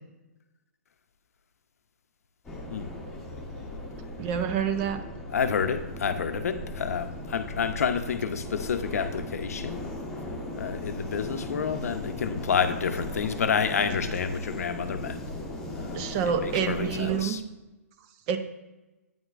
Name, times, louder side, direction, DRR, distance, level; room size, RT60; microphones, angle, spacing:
sound 1, 2.4-17.2, left 1 dB, 5° left, 1.3 m, -38 dB
voice 1, 4.2-5.0 15.9-17.4 18.3-18.4, right 7 dB, 35° right, 9 dB, 0.6 m, -27 dB
voice 2, 5.3-9.8 10.6-15.2 15.7-17.4, left 6 dB, 70° left, 8 dB, 0.6 m, -29 dB
8.8 x 6.1 x 2.5 m, 1.1 s
hypercardioid pair, 130°, 8 cm